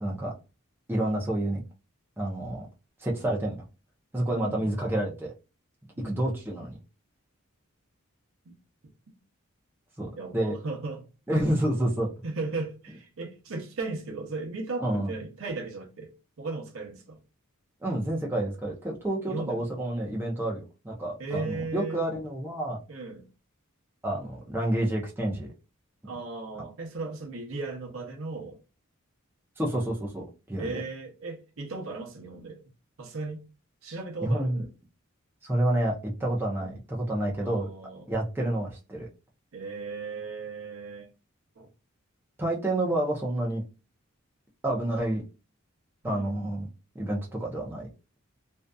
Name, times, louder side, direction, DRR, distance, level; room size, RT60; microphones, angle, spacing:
voice 1, 0.0-0.3 0.9-1.6 2.2-2.6 3.0-3.6 4.1-5.3 6.0-6.8 10.0-10.6 11.3-12.1 14.8-15.1 17.8-22.8 24.0-25.5 26.6-26.7 29.6-30.8 34.2-34.6 35.4-37.7 38.1-39.1 42.4-43.6 44.6-45.2 46.0-46.7 46.9-47.9, right 1 dB, 10° right, 0.5 m, -29 dB
voice 2, 4.3-4.7 6.0-6.2 10.2-11.1 12.2-16.1 16.4-17.2 19.3-19.7 21.2-22.0 22.9-23.3 26.0-28.6 30.6-32.6 33.0-33.4 33.8-34.7 36.6-36.8 37.4-38.1 39.5-41.1 41.6-41.7 46.0-46.5, right 3 dB, 70° right, 0.6 m, -36 dB
2.6 x 2.3 x 2.2 m
head